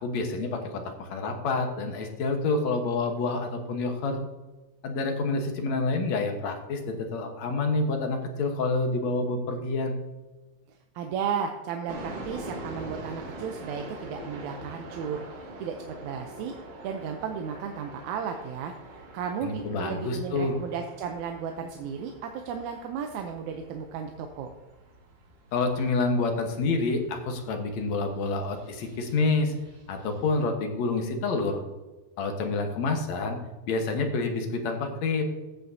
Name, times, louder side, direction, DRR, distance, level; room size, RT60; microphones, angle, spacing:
voice 1, 0.0-4.2 4.8-10.0 19.4-20.6 25.5-29.5 29.9-31.6 32.2-33.4 33.7-35.2, left 3 dB, 70° left, 4 dB, 2.4 m, -28 dB
voice 2, 10.7-16.5 16.8-18.7 19.1-24.5, right 7 dB, 85° right, 4 dB, 2.1 m, -34 dB
sound 1, 11.9-30.4, right 2 dB, 60° right, 2.3 m, -45 dB
13.5 x 8.4 x 2.7 m, 1.2 s
omnidirectional pair, 3.3 m